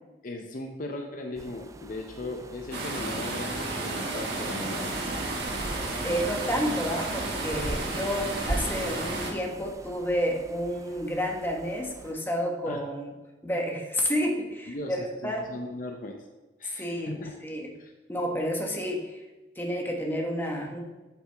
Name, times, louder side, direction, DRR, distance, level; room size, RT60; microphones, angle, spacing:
voice 1, 0.2-4.9 12.7-12.8 14.7-16.2 16.6-17.4 17.8-17.9, left 2 dB, 50° left, 3 dB, 0.7 m, -38 dB
Wind between trees, 1.4-12.1, right 1 dB, 20° right, 0.4 m, -40 dB
sound 1, 2.7-9.3, right 2 dB, 70° right, 1.6 m, -32 dB
voice 2, 6.0-13.1 13.4-15.5 16.8-17.7 18.1-19.2 19.5-20.8, equal, 10° left, 0 dB, 1.3 m, -30 dB
11.0 x 6.0 x 3.4 m, 1.1 s
head